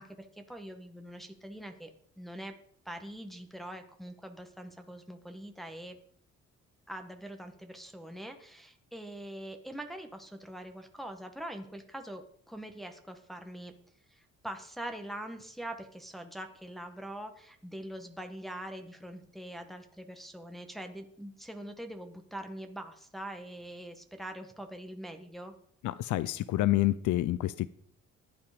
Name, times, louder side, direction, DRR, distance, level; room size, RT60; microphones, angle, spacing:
voice 1, 0.0-1.9 2.2-2.6 2.8-6.0 6.9-13.7 14.1-25.5, right 1 dB, ahead, 5 dB, 1.7 m, -43 dB
voice 2, 25.8-27.7, left 15 dB, 75° left, 17 dB, 0.6 m, -28 dB
15.0 x 9.5 x 5.2 m, 0.64 s
cardioid pair, 90°, 30 cm